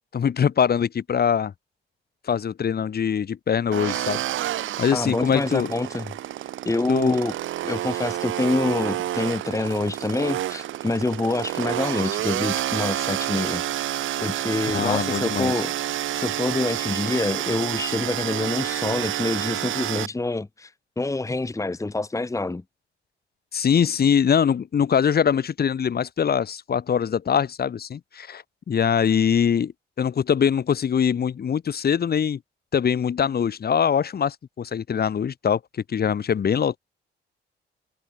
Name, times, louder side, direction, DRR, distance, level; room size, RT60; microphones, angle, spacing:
voice 1, 0.1-1.5 2.3-4.2 4.8-5.7 6.9-7.2 14.7-15.5 23.5-29.7 30.0-32.4 32.7-35.6 35.9-36.8, left 7 dB, 50° left, 5.2 m, -23 dB
sound 1, 3.7-20.1, right 13 dB, 80° right, 2.3 m, -29 dB
voice 2, 4.9-6.1 6.6-7.3 7.6-13.6 14.2-15.7 16.1-22.6, left 2 dB, 15° left, 1.6 m, -26 dB
cardioid pair, 90°, 20 cm